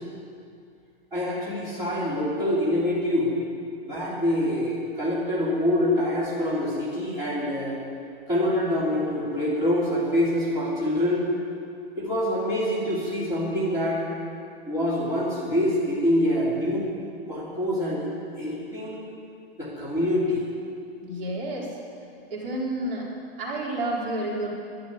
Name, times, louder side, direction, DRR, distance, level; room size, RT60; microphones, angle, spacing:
voice 1, 1.1-3.4 3.8-7.8 8.3-11.3 12.0-14.0 14.6-16.9 17.3-18.1 18.4-19.0 19.6-20.4, left 1 dB, 10° right, -9 dB, 2.9 m, -25 dB
voice 2, 21.0-21.8 22.3-23.1 23.4-24.5, right 1 dB, 65° right, -3 dB, 4.3 m, -30 dB
12.0 x 12.0 x 9.5 m, 2.4 s
supercardioid pair, 175°, 31 cm